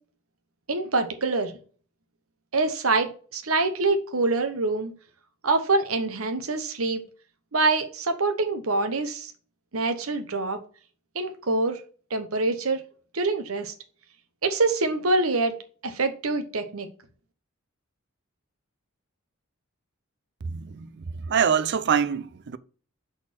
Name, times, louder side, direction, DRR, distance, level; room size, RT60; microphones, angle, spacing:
voice 1, 0.7-1.5 2.5-4.9 5.4-7.0 7.5-9.3 9.7-10.6 11.1-11.8 12.1-12.8 13.1-13.7 14.4-15.5 15.8-16.9, right 3 dB, 85° right, 1.0 m, -25 dB
voice 2, 20.4-22.6, right 7 dB, 55° right, 0.5 m, -25 dB
6.4 x 3.9 x 4.4 m
head